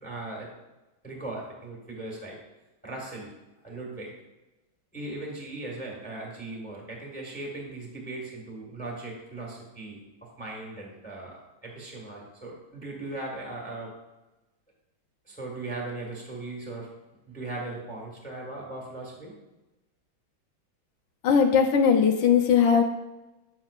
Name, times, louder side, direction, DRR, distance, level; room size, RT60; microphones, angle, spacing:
voice 1, 0.0-0.5 1.0-2.4 2.8-3.3 3.6-4.1 4.9-10.0 10.4-13.9 15.3-16.9 17.3-19.3, right 2 dB, 5° left, -2 dB, 1.3 m, -38 dB
voice 2, 21.2-22.8, left 7 dB, 70° left, 4 dB, 1.2 m, -19 dB
9.0 x 7.3 x 2.4 m, 1.0 s
omnidirectional pair, 2.2 m